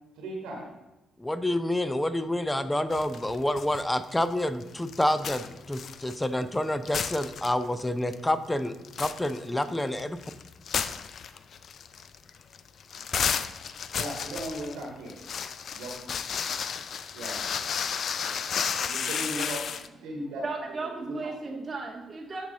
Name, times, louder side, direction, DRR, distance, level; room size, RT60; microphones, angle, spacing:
voice 1, 0.2-0.7 13.9-15.1 15.7-15.9 17.1-17.4 18.8-19.6 20.0-20.4 20.9-21.1, right 1 dB, 70° right, -1 dB, 1.2 m, -36 dB
voice 2, 1.2-8.7 9.0-10.2, left 1 dB, 15° left, 12 dB, 0.6 m, -28 dB
sound 1, 2.9-3.8 4.1-6.6 6.8-7.8 8.1-8.2 8.7-19.9, left 7 dB, 55° left, 0.3 m, -33 dB
voice 3, 19.7-22.5, right 3 dB, 35° right, -1 dB, 0.8 m, -36 dB
9.9 x 4.1 x 3.7 m, 0.97 s
hypercardioid pair, 40°, 0 cm